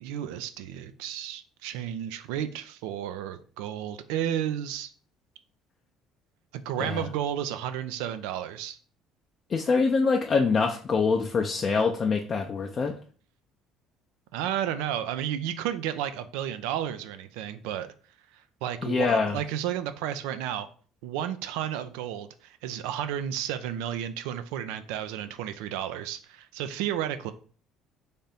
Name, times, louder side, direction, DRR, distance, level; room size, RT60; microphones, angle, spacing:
voice 1, 0.0-4.9 6.5-8.8 14.3-17.9 18.6-20.7 21.0-27.3, right 10 dB, 80° right, 0.4 m, -32 dB
voice 2, 9.5-13.0 18.8-19.4, left 4 dB, 40° left, 0.5 m, -25 dB
3.4 x 2.6 x 4.1 m
hypercardioid pair, 70°, 0 cm